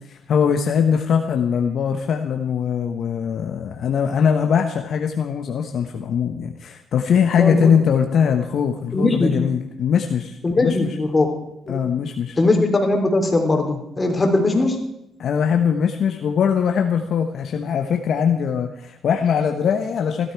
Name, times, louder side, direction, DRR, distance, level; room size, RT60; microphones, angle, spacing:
voice 1, 0.1-10.9 11.7-12.4 15.2-20.3, left 7 dB, 65° left, 4 dB, 1.1 m, -21 dB
voice 2, 7.3-7.7 8.9-9.3 10.4-11.3 11.7-11.8 12.4-14.8, left 2 dB, 25° left, 3 dB, 3.5 m, -19 dB
16.0 x 12.5 x 4.7 m, 0.80 s
cardioid pair, 90°, 0 cm